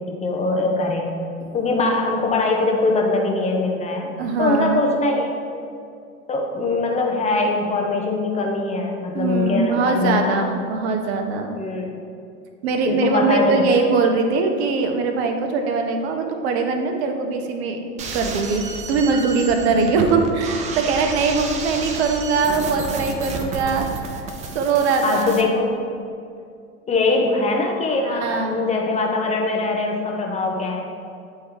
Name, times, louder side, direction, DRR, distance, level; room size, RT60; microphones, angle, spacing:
voice 1, 0.1-1.1 1.5-4.1 4.4-5.3 6.3-10.4 11.6-12.0 12.8-13.7 19.7-19.9 25.0-25.7 26.9-30.9, left 3 dB, 15° left, 1 dB, 0.8 m, -22 dB
voice 2, 4.2-4.8 9.1-11.6 12.6-18.6 18.9-24.2 24.5-25.3 28.0-28.6, right 4 dB, 50° right, 5 dB, 0.8 m, -21 dB
sound 1, 18.0-25.4, right 4 dB, 20° right, 0.4 m, -31 dB
9.2 x 3.2 x 3.5 m, 2.4 s
figure-of-eight pair, 90°, 40 cm